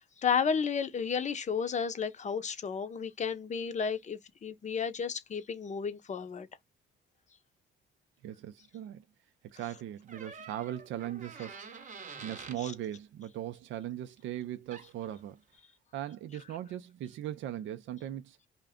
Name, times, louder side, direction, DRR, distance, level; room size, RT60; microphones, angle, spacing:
voice 1, 0.0-6.5 12.6-12.7, left 6 dB, 35° left, 0.6 m, -32 dB
voice 2, 8.2-9.0 9.5-11.6 12.2-15.4 15.9-18.4, right 12 dB, 75° right, 0.4 m, -39 dB
Door, 10.1-12.6 14.4-14.5 14.7-15.1, right 5 dB, 40° right, 0.8 m, -47 dB
2.5 x 2.1 x 3.5 m
cardioid pair, 90°, 20 cm